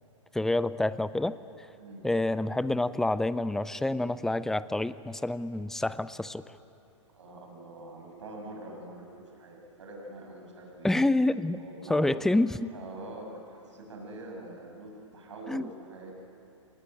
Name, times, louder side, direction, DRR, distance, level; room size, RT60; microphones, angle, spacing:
voice 1, 0.3-1.4 2.0-6.4 10.8-11.6 11.9-12.7 15.5-15.7, left 2 dB, 5° left, 16 dB, 0.5 m, -27 dB
voice 2, 7.1-10.9 11.6-12.1 12.7-16.1, right 2 dB, 70° right, 0 dB, 7.0 m, -44 dB
26.5 x 20.0 x 9.0 m, 2.8 s
figure-of-eight pair, 115°, 16 cm